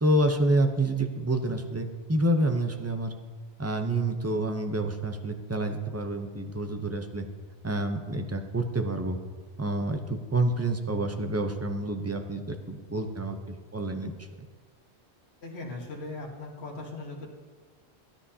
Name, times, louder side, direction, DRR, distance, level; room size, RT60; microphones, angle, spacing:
voice 1, 0.0-3.1 3.6-7.3 7.6-9.2 9.6-14.3, right 1 dB, 15° right, 5 dB, 0.6 m, -28 dB
voice 2, 15.4-17.3, left 2 dB, 70° left, -2 dB, 1.7 m, -39 dB
16.0 x 9.9 x 2.8 m, 1.4 s
omnidirectional pair, 1.1 m